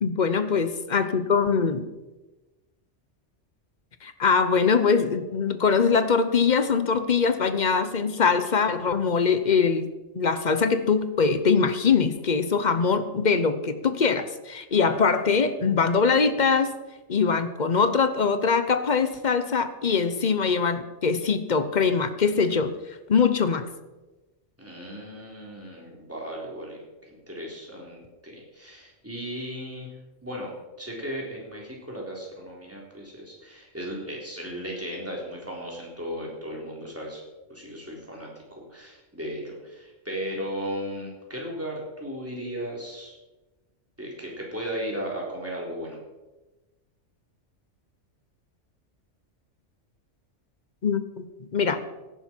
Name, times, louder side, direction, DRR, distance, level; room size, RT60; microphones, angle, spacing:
voice 1, 0.0-1.9 4.0-16.7 17.1-22.7 23.1-23.7 50.8-51.8, left 5 dB, 40° left, 11 dB, 0.9 m, -23 dB
voice 2, 24.6-29.9 30.2-37.2 37.5-43.2 44.0-46.0, equal, 10° right, -3 dB, 3.7 m, -36 dB
17.0 x 10.5 x 4.5 m, 1.1 s
omnidirectional pair, 1.2 m